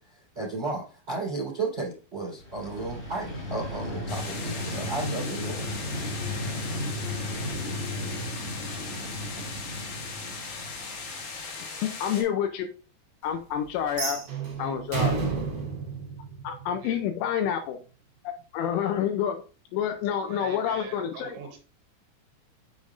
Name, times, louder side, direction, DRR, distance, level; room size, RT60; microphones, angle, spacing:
voice 1, 0.3-5.6, right 3 dB, 20° right, -5 dB, 3.4 m, -33 dB
Vehicle, 2.3-11.3, left 1 dB, 40° left, 1.7 m, -35 dB
sound 1, 4.1-12.2, left 4 dB, 60° left, 2.5 m, -38 dB
voice 2, 12.0-12.7 13.2-14.2 14.6-15.1 16.4-17.8 18.2-19.4 19.7-21.4, left 9 dB, 85° left, 7 dB, 2.8 m, -28 dB
sound 2, 13.9-17.0, right 5 dB, 40° right, 2.5 m, -31 dB
voice 3, 20.2-21.6, right 7 dB, 75° right, 4 dB, 2.8 m, -43 dB
7.2 x 6.2 x 2.5 m, 0.37 s
omnidirectional pair, 6.0 m